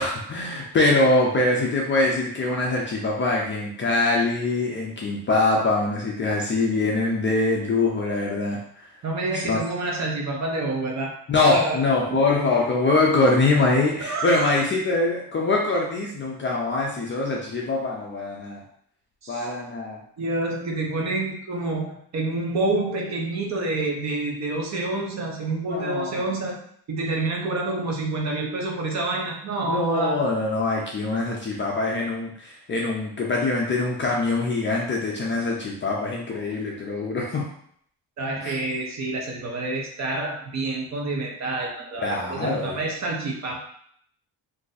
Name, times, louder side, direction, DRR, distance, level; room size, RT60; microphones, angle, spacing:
voice 1, 0.0-8.6 9.3-9.6 11.3-18.6 19.3-20.0 25.6-26.2 29.6-37.5 38.4-38.6 42.0-42.8, left 2 dB, 30° left, -2 dB, 0.4 m, -23 dB
voice 2, 9.0-11.1 11.5-11.8 12.1-12.2 14.0-14.5 19.2-19.5 20.2-26.6 26.9-30.2 38.2-43.6, right 2 dB, 40° right, 0 dB, 0.6 m, -28 dB
2.6 x 2.5 x 3.9 m, 0.65 s
cardioid pair, 175°, 43 cm